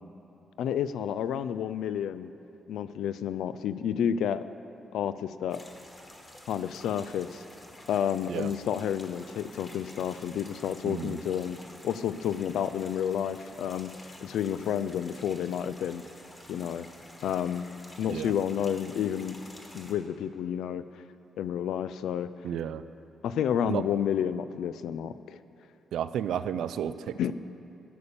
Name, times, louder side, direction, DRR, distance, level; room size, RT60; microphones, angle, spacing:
voice 1, 0.6-2.3 2.7-4.4 4.9-5.6 6.5-7.4 7.9-11.6 11.8-13.9 14.2-16.0 16.5-16.9 17.2-17.6 18.0-19.4 19.7-20.8 21.4-22.3 23.2-25.4 27.2-27.3, left 9 dB, 90° left, 13 dB, 0.4 m, -30 dB
sound 1, 5.5-19.9, left 1 dB, 15° left, 1.2 m, -50 dB
voice 2, 10.8-11.2 18.1-18.4 22.4-22.8 23.7-23.9 25.9-27.3, right 9 dB, 80° right, 13 dB, 0.4 m, -32 dB
11.0 x 7.0 x 6.7 m, 2.8 s
cardioid pair, 140°, 0 cm